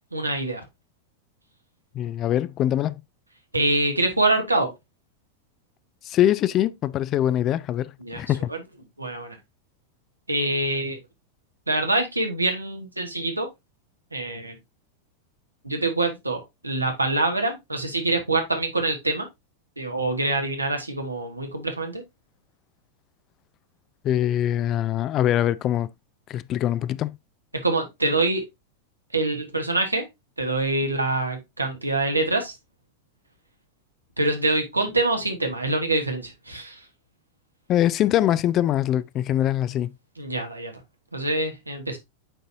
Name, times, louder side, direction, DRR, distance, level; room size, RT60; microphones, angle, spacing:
voice 1, 0.1-0.6 3.5-4.7 8.0-8.6 9.0-9.4 10.3-11.0 11.7-13.5 14.1-14.6 15.6-19.3 19.8-22.0 27.6-28.4 29.1-30.1 30.4-32.5 34.2-36.9 40.2-40.8 41.1-42.0, right 2 dB, 85° right, 1.2 m, -25 dB
voice 2, 1.9-3.0 6.0-8.5 24.0-25.9 26.3-27.2 37.7-39.9, left 12 dB, 35° left, 0.3 m, -23 dB
8.8 x 4.0 x 2.6 m
figure-of-eight pair, 90°, 0 cm